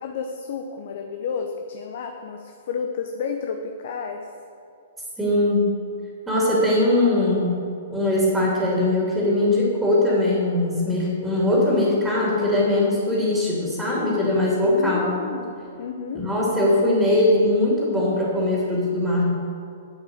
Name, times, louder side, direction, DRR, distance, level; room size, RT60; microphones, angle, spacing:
voice 1, 0.0-4.3 14.7-16.3, left 6 dB, 50° left, 5 dB, 0.8 m, -31 dB
voice 2, 5.2-5.7 6.3-7.5 7.9-15.1 16.1-19.2, left 1 dB, 5° right, -5 dB, 2.9 m, -21 dB
9.0 x 8.5 x 6.5 m, 2.5 s
figure-of-eight pair, 115°, 0 cm